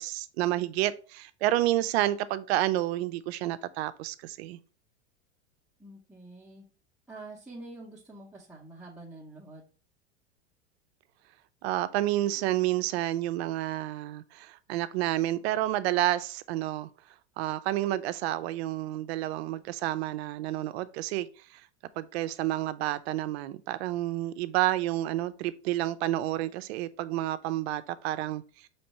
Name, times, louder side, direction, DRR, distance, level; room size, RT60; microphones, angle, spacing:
voice 1, 0.0-4.6 11.6-16.9 17.4-21.6 22.0-28.7, right 15 dB, 65° right, 0.5 m, -30 dB
voice 2, 5.8-6.6 7.1-9.6, right 2 dB, ahead, 0.7 m, -46 dB
4.2 x 3.2 x 2.9 m
hypercardioid pair, 105°, 35 cm